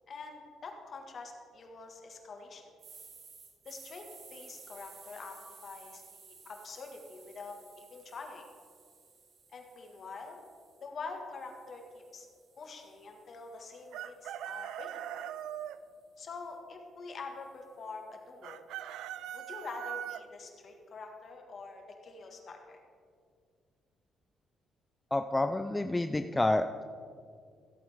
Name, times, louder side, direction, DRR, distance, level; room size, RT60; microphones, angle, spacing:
voice 1, 0.1-2.6 3.6-8.5 9.5-10.4 10.8-12.3 12.6-15.3 16.2-18.6 19.3-22.8, left 4 dB, 50° left, 3 dB, 1.7 m, -46 dB
sound 1, 2.8-10.9 11.3-15.5, right 5 dB, 65° right, 1.9 m, -56 dB
Chicken rooster, 13.9-15.8 18.4-20.2, right 11 dB, 85° right, 0.4 m, -40 dB
voice 2, 25.1-26.8, left 2 dB, 15° left, 8 dB, 0.4 m, -29 dB
15.0 x 8.3 x 3.6 m, 2.2 s
cardioid pair, 90°, 0 cm